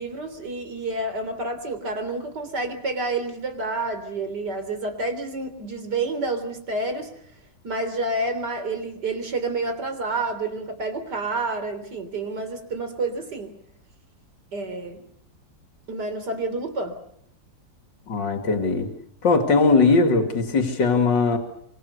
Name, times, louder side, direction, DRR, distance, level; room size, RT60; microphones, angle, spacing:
voice 1, 0.0-7.1 7.6-13.6 14.5-15.0 15.9-17.0, right 2 dB, 60° right, 9 dB, 4.0 m, -29 dB
voice 2, 18.1-18.9 19.2-21.4, left 4 dB, 70° left, 5 dB, 3.3 m, -19 dB
26.5 x 25.0 x 6.9 m, 0.67 s
omnidirectional pair, 2.0 m